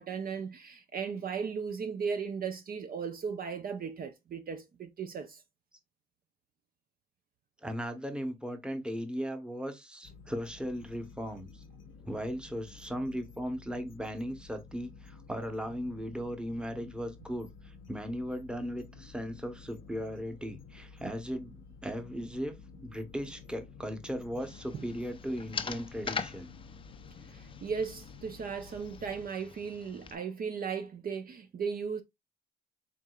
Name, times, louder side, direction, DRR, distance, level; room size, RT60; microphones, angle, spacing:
voice 1, 0.0-5.4 24.7-24.8 27.3-32.0, right 6 dB, 45° right, 0.6 m, -36 dB
voice 2, 7.6-11.5 12.0-26.5, equal, 5° right, 0.9 m, -37 dB
sound 1, 10.0-29.3, left 5 dB, 80° left, 0.5 m, -52 dB
sound 2, 24.4-30.2, left 5 dB, 25° left, 0.5 m, -42 dB
4.7 x 3.7 x 2.3 m
cardioid pair, 90°, 20 cm